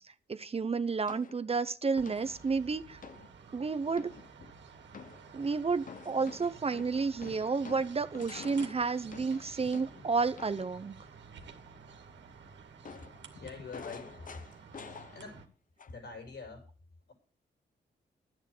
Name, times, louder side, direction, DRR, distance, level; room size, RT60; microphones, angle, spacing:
voice 1, 0.3-3.0 3.5-4.1 5.3-11.0, right 4 dB, 35° right, 0.7 m, -31 dB
sound 1, 1.1-1.5 2.1-2.5 3.0-3.3 4.0-4.5 4.9-5.3 5.8-10.8 12.8-15.5 15.8-16.2, left 6 dB, 50° left, 0.9 m, -49 dB
sound 2, 1.9-15.5, right 5 dB, 85° right, 2.2 m, -52 dB
voice 2, 13.4-14.1 14.5-14.6 15.1-15.4 15.9-16.7, left 4 dB, 70° left, 6.4 m, -45 dB
11.5 x 9.0 x 6.6 m
cardioid pair, 100°, 18 cm